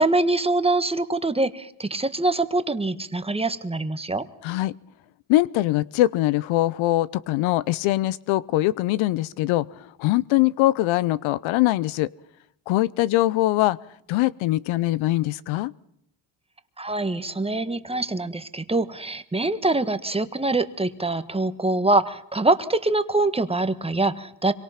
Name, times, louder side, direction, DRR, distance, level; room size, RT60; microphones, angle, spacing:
voice 1, 0.0-4.2 16.8-24.5, right 2 dB, 10° right, 10 dB, 1.5 m, -24 dB
voice 2, 4.4-4.7 5.3-12.1 12.7-13.8 14.1-15.7, left 16 dB, 80° left, 20 dB, 0.8 m, -22 dB
25.5 x 23.5 x 5.9 m, 0.74 s
supercardioid pair, 85°, 47 cm